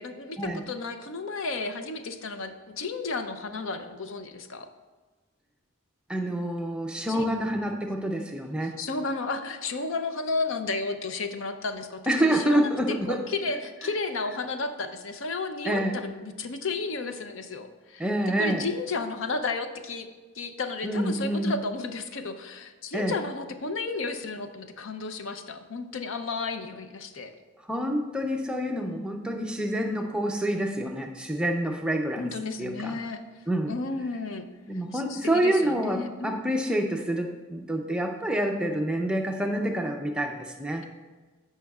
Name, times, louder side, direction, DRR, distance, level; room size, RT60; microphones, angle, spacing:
voice 1, 0.0-4.7 7.1-7.3 8.8-18.0 18.4-20.1 20.3-27.3 32.2-33.2 33.7-34.4 34.9-36.4, left 3 dB, 70° left, 8 dB, 0.6 m, -33 dB
voice 2, 6.1-8.8 12.1-13.2 15.7-16.0 18.0-18.7 20.8-21.6 22.9-23.1 27.7-32.3 32.6-33.0 33.5-33.7 34.7-40.8, right 1 dB, 5° right, 2 dB, 0.5 m, -27 dB
14.5 x 5.5 x 2.4 m, 1.3 s
head